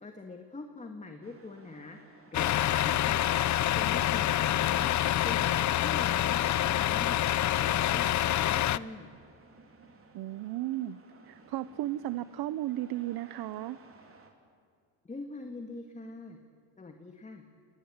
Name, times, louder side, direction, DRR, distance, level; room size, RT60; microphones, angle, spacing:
voice 1, 0.0-2.0 2.3-3.2 3.8-4.9 5.2-7.2 7.6-9.1 15.0-16.4 16.8-17.4, left 3 dB, 15° left, 5 dB, 1.7 m, -43 dB
sound 1, 1.2-14.3, right 4 dB, 30° right, 3.4 m, -57 dB
Truck, 2.3-8.8, left 12 dB, 40° left, 0.6 m, -27 dB
voice 2, 10.1-11.0 11.3-13.8, right 14 dB, 60° right, 15 dB, 0.8 m, -34 dB
29.5 x 20.0 x 8.7 m, 2.3 s
cardioid pair, 140°, 44 cm